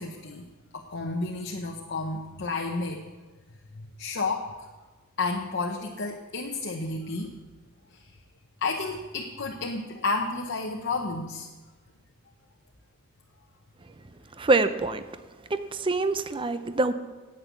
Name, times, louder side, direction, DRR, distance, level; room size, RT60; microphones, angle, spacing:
voice 1, 0.0-3.1 3.7-4.5 5.2-7.4 7.9-8.1 8.6-11.5, left 3 dB, 55° left, 1 dB, 0.9 m, -31 dB
voice 2, 14.4-15.0 15.5-16.9, right 3 dB, 25° right, 11 dB, 0.6 m, -25 dB
9.9 x 8.8 x 8.2 m, 1.3 s
head